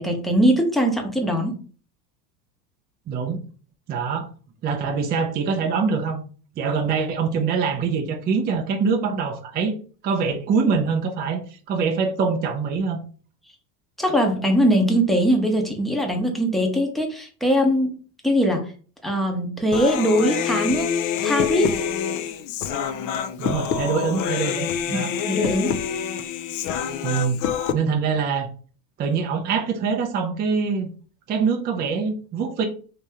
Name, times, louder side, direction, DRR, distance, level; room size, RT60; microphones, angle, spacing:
voice 1, 0.0-1.5 14.0-17.9 18.2-18.6 19.0-21.0 21.2-21.8 24.9-25.7, equal, ahead, 2 dB, 0.7 m, -21 dB
voice 2, 3.1-3.4 3.9-4.3 4.6-6.2 6.6-9.7 10.0-13.0 23.4-25.1 27.0-27.4 27.7-28.5 29.0-30.9 31.3-32.6, right 5 dB, 20° right, 4 dB, 0.4 m, -24 dB
Human voice, 19.7-27.7, left 8 dB, 40° left, 0.4 m, -26 dB
3.0 x 2.9 x 3.6 m, 0.40 s
supercardioid pair, 105°, 49 cm